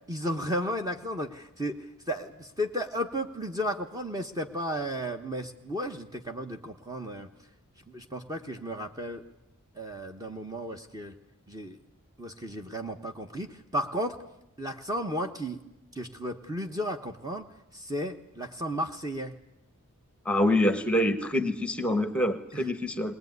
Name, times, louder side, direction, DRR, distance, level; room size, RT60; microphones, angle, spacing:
voice 1, 0.1-7.3 7.9-9.2 9.8-11.1 11.5-11.8 12.2-14.2 14.6-15.6 15.9-17.4 17.7-19.3 22.5-22.7, equal, 15° right, 4 dB, 1.2 m, -34 dB
voice 2, 20.3-23.1, left 1 dB, 5° left, 9 dB, 1.3 m, -26 dB
21.0 x 20.0 x 9.5 m, 0.85 s
head